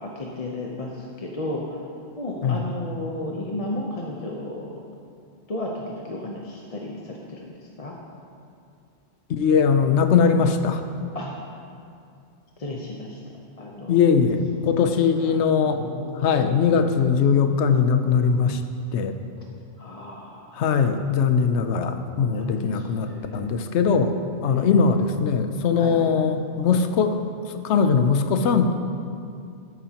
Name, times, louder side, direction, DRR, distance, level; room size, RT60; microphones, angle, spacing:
voice 1, 0.0-1.8 2.2-4.8 5.5-7.5 7.8-8.0 11.1-11.4 12.6-13.2 13.6-14.0 14.6-14.7 15.2-16.8 19.8-20.7 22.3-23.6 24.5-24.8 25.8-26.0, left 1 dB, 35° left, -2 dB, 0.8 m, -34 dB
voice 2, 9.3-10.8 13.9-15.8 16.1-18.6 18.9-19.2 20.5-24.2 24.4-28.7, left 6 dB, 75° left, 8 dB, 0.9 m, -21 dB
13.0 x 11.0 x 2.9 m, 2.4 s
omnidirectional pair, 1.2 m